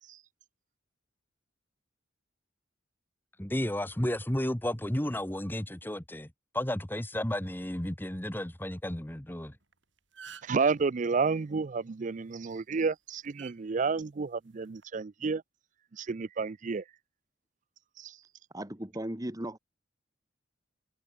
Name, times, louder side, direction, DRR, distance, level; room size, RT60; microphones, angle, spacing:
voice 1, 3.4-6.3 6.5-9.5, left 1 dB, 10° left, 1.2 m, -32 dB
sound 1, 9.6-9.7 10.0-10.7 12.3-12.5 13.4-13.6 14.6-14.8, right 7 dB, 65° right, 6.1 m, -47 dB
voice 2, 10.4-15.4 15.9-16.8 18.0-18.2, right 4 dB, 40° right, 0.4 m, -30 dB
voice 3, 18.5-19.6, right 1 dB, 20° right, 1.4 m, -36 dB
head